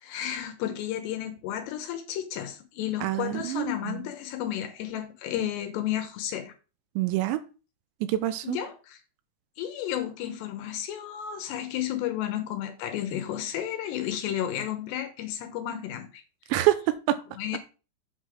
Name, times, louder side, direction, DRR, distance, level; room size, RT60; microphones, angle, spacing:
voice 1, 0.0-6.5 8.4-9.0 9.6-16.2 17.4-17.6, left 11 dB, 75° left, 2.9 m, -32 dB
voice 2, 3.0-4.0 7.0-7.4 8.1-8.6 16.5-17.2, right 14 dB, 85° right, 2.9 m, -26 dB
8.2 x 4.0 x 6.2 m
omnidirectional pair, 5.3 m